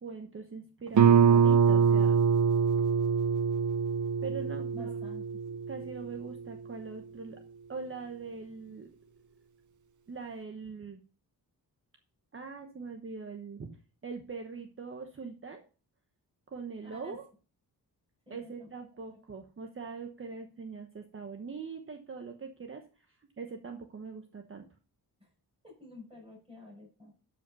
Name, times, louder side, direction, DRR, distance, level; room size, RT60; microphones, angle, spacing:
voice 1, 0.0-2.2 4.2-4.9 5.5-7.4 7.7-8.9 10.1-11.0 12.3-13.7 14.0-15.6 16.5-17.2 18.3-22.8 23.4-24.7, right 5 dB, 35° right, 4 dB, 1.1 m, -42 dB
Guitar, 1.0-6.4, right 7 dB, 50° right, 0.8 m, -24 dB
voice 2, 4.7-5.2 16.8-17.2 18.3-18.7 19.1-19.2 25.2-25.3 25.6-27.1, left 2 dB, 15° right, -3 dB, 6.4 m, -50 dB
12.5 x 5.4 x 5.4 m, 0.37 s
wide cardioid pair, 155°, 38 cm